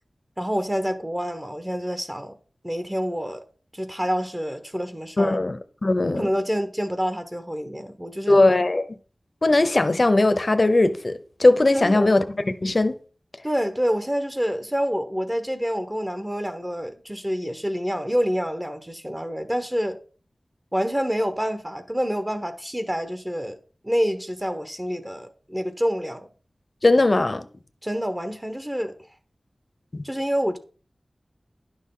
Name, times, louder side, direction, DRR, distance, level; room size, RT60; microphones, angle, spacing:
voice 1, 0.4-2.4 2.6-3.4 3.7-5.4 6.1-8.4 11.7-12.1 13.4-20.0 20.7-23.6 23.8-26.3 27.8-28.9 30.0-30.6, equal, 15° right, 1.1 m, -27 dB
voice 2, 5.2-6.3 8.3-8.9 9.4-12.9 26.8-27.4 29.9-30.0, left 2 dB, 45° left, 0.8 m, -19 dB
11.0 x 6.4 x 3.8 m
wide cardioid pair, 80°, 0 cm